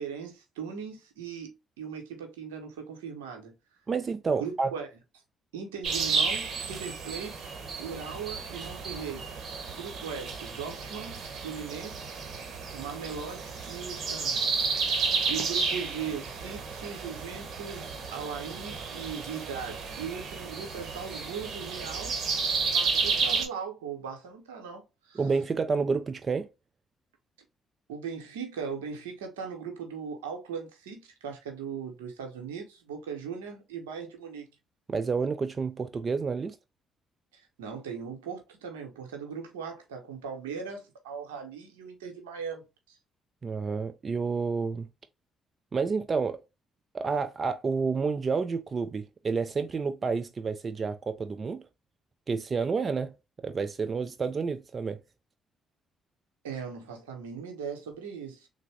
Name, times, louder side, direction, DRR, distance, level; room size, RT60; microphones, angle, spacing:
voice 1, 0.0-3.6 4.4-4.9 5.5-9.3 9.8-12.1 12.7-14.5 15.3-22.1 22.7-25.2 27.9-34.5 37.3-43.0 56.4-58.5, right 6 dB, 90° right, 0.8 m, -39 dB
voice 2, 3.9-4.7 25.2-26.5 34.9-36.6 43.4-44.9 45.7-46.4 46.9-51.7 52.3-55.0, right 5 dB, 40° right, 0.4 m, -29 dB
sound 1, 5.8-23.5, right 5 dB, 60° right, 0.9 m, -32 dB
3.4 x 2.1 x 3.1 m
hypercardioid pair, 50°, 0 cm